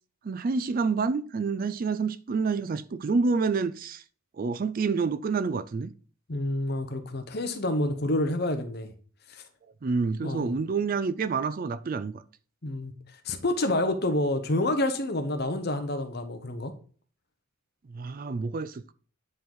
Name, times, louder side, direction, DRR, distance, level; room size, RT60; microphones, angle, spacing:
voice 1, 0.2-4.0 4.4-5.9 9.8-12.2 17.9-18.9, right 4 dB, 40° right, 0.3 m, -28 dB
voice 2, 6.3-8.9 9.3-9.4 10.2-10.5 12.6-12.9 13.2-16.7, left 1 dB, 45° left, 1.0 m, -28 dB
9.4 x 4.0 x 4.6 m
head